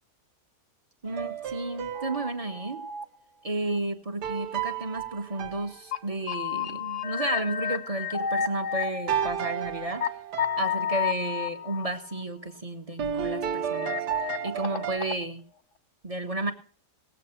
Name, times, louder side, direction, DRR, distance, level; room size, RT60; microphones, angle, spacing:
voice 1, 1.0-2.8 3.4-10.1 10.6-14.0 14.4-15.4 16.0-16.5, right 2 dB, 25° right, 6 dB, 1.2 m, -32 dB
sound 1, 1.1-2.6 4.2-6.4 9.1-11.1 13.0-15.0, right 9 dB, 80° right, 1.5 m, -33 dB
sound 2, 1.9-3.0 3.7-3.8 5.6-5.7 5.9-6.0 6.3-10.1 10.4-12.2 13.7-15.2, left 7 dB, 55° left, 1.0 m, -32 dB
19.0 x 7.6 x 5.8 m, 0.43 s
omnidirectional pair, 1.8 m